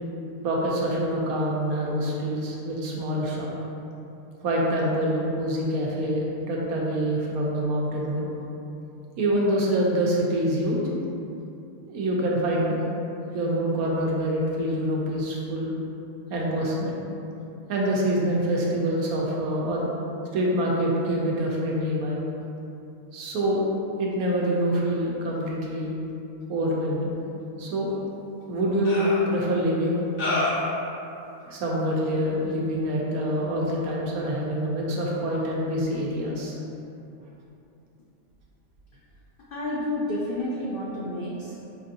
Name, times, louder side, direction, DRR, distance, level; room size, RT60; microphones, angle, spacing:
voice 1, 0.4-3.5 4.4-8.3 9.2-10.8 11.9-12.8 13.3-15.7 16.3-17.0 17.7-19.9 20.3-22.2 23.1-23.6 24.0-25.9 26.5-27.2 27.6-27.9 28.5-30.1 31.4-36.6, equal, 85° right, -3 dB, 1.1 m, -26 dB
sound 1, 27.9-28.0 28.8-29.2 30.2-30.7, left 1 dB, 45° left, 1.0 m, -27 dB
voice 2, 39.5-41.6, left 1 dB, 80° left, -6 dB, 0.4 m, -30 dB
5.1 x 2.7 x 2.5 m, 2.8 s
omnidirectional pair, 1.5 m